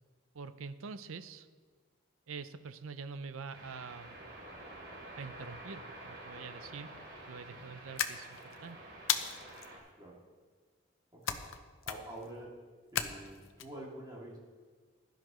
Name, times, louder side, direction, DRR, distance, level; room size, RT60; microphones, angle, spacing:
voice 1, 0.3-1.5 2.3-4.2 5.1-7.0 7.3-8.8, right 5 dB, 85° right, 12 dB, 0.6 m, -45 dB
sound 1, 3.5-9.8, right 1 dB, 65° right, 3.0 m, -49 dB
sound 2, 8.0-8.6 9.1-9.7 11.3-11.6 11.8-12.3 13.0-13.6, left 8 dB, 80° left, 0.7 m, -34 dB
voice 2, 11.1-11.5 11.9-12.7 12.9-14.4, right 1 dB, 20° right, -4 dB, 2.5 m, -47 dB
16.0 x 12.0 x 3.1 m, 1.5 s
head